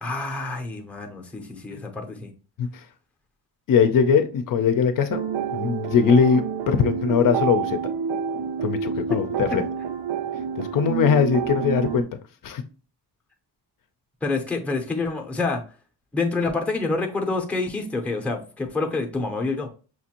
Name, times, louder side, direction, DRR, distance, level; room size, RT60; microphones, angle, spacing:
voice 1, 0.0-2.3 9.5-9.6 14.2-15.6 16.1-19.7, left 3 dB, 5° left, 0.6 m, -27 dB
voice 2, 3.7-5.2 5.5-7.8 8.6-9.7 10.6-12.1 12.4-12.6, left 6 dB, 55° left, 0.5 m, -20 dB
sound 1, 5.1-12.0, right 8 dB, 80° right, 0.6 m, -28 dB
5.9 x 2.5 x 2.8 m
cardioid pair, 170°, 40 cm